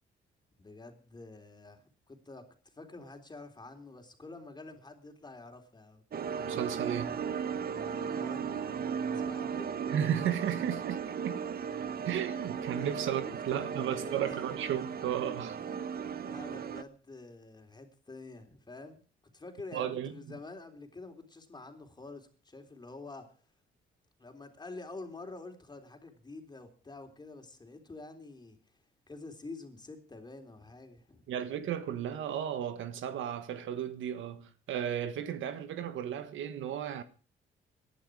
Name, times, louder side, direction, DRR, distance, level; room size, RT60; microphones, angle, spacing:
voice 1, 0.6-6.0 7.7-8.8 9.1-9.7 12.7-13.0 13.3-14.6 15.6-19.0 19.3-23.3 24.2-28.6 29.1-31.3, left 3 dB, 20° left, 3.5 m, -48 dB
sound 1, 6.1-16.8, right 7 dB, 50° right, 1.1 m, -36 dB
voice 2, 6.5-7.2 9.9-11.4 12.0-15.6 19.7-20.4 31.3-37.0, right 9 dB, 80° right, 1.5 m, -34 dB
18.5 x 11.5 x 4.9 m
cardioid pair, 90°, 20 cm